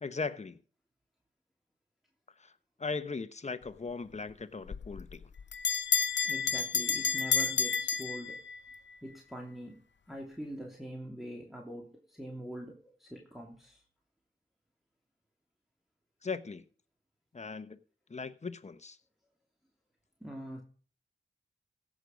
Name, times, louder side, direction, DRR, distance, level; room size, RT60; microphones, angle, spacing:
voice 1, 0.0-0.6 2.4-2.5 2.8-5.3 16.2-16.6 17.3-17.8 18.1-19.0, left 4 dB, 35° left, 1.0 m, -38 dB
Bell, 4.7-8.8, left 6 dB, 65° left, 0.6 m, -30 dB
voice 2, 6.2-8.4 9.0-13.8 20.2-20.6, equal, ahead, 2.7 m, -44 dB
16.5 x 6.3 x 5.2 m
wide cardioid pair, 70°, 20 cm